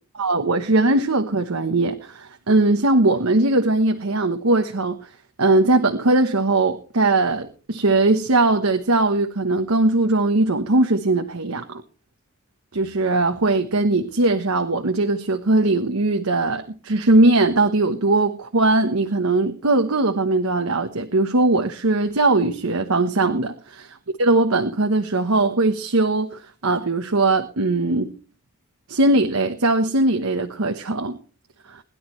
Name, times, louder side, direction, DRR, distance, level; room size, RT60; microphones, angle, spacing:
voice 1, 0.2-5.1 5.4-11.8 12.7-23.5 24.2-28.2 28.9-31.2, right 2 dB, 80° right, 1.1 m, -20 dB
21.5 x 11.0 x 3.2 m
head